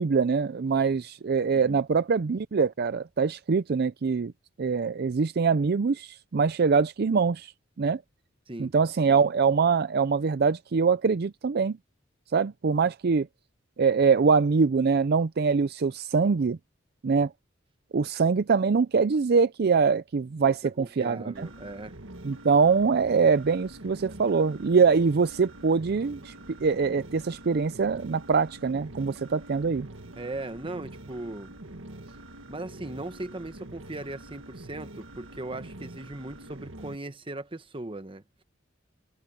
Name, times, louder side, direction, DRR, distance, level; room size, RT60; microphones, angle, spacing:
voice 1, 0.0-4.3 4.6-7.5 7.8-8.0 8.6-11.8 12.3-13.3 13.8-16.6 17.0-17.3 17.9-21.5 22.2-26.3 26.6-29.9, right 5 dB, 55° right, 0.4 m, -24 dB
voice 2, 20.4-22.0 30.2-31.6 32.5-38.4, right 2 dB, 25° right, 1.1 m, -38 dB
sound 1, 21.3-37.0, right 1 dB, 85° right, 1.8 m, -45 dB
head